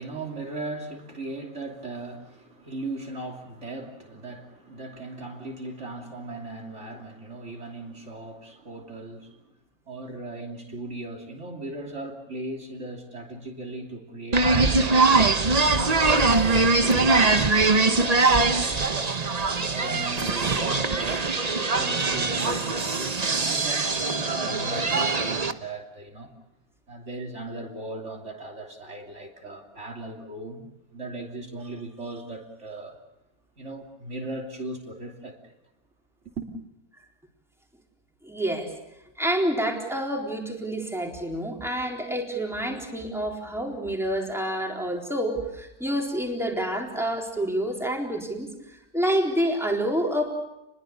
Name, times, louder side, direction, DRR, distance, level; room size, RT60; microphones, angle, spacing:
voice 1, 0.0-9.5 9.9-15.2 15.7-19.1 19.6-21.3 21.7-26.3 26.9-33.0 33.6-35.5 36.4-36.5, right 2 dB, 50° right, 1 dB, 3.4 m, -38 dB
sound 1, 14.3-25.5, right 3 dB, 30° right, 1.0 m, -22 dB
voice 2, 38.2-38.7 39.2-48.5 48.9-50.3, right 1 dB, ahead, 0 dB, 4.0 m, -28 dB
29.5 x 21.5 x 6.8 m, 0.90 s
omnidirectional pair, 1.6 m